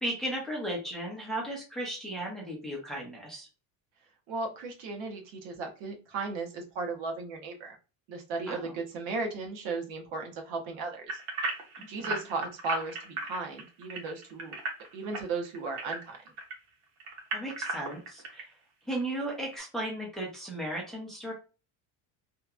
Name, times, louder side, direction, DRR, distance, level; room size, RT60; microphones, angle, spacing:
voice 1, 0.0-3.5 8.5-8.7 11.8-12.1 17.3-18.5 18.9-21.3, right 1 dB, ahead, -3 dB, 0.6 m, -35 dB
voice 2, 4.3-7.8 8.1-11.1 11.9-14.6 14.9-16.2, right 3 dB, 65° right, 3 dB, 0.9 m, -36 dB
sound 1, 11.1-16.5 17.0-18.4 18.9-19.0 19.5-19.6, right 3 dB, 85° right, 1.1 m, -35 dB
2.9 x 2.2 x 2.3 m, 0.32 s
cardioid pair, 170°, 48 cm